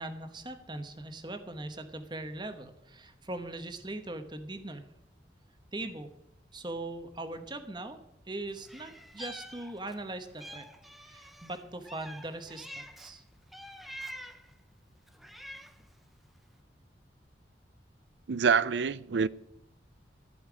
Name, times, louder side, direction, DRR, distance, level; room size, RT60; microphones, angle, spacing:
voice 1, 0.0-4.8 5.7-6.1 6.5-8.0 8.3-10.7 11.0-13.2, right 2 dB, 25° right, 1.0 m, -40 dB
Meow, 8.6-10.0 10.4-13.1 13.5-14.5 15.1-15.9, equal, ahead, 0.6 m, -46 dB
voice 2, 18.3-19.3, right 6 dB, 80° right, 0.5 m, -26 dB
14.5 x 5.6 x 8.9 m
head